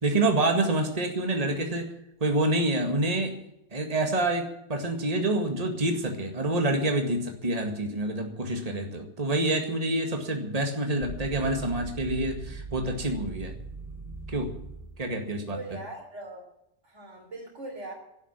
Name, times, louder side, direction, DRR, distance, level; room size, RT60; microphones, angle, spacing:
voice 1, 0.0-1.9 2.2-3.3 3.7-13.5 14.3-14.5 15.0-15.6, right 2 dB, 35° right, 3 dB, 2.1 m, -27 dB
sound 1, 11.0-15.0, right 3 dB, 10° right, 3.0 m, -40 dB
voice 2, 15.5-16.4 16.8-17.9, right 2 dB, 90° right, -1 dB, 3.8 m, -40 dB
12.0 x 10.0 x 9.8 m, 0.81 s
omnidirectional pair, 1.2 m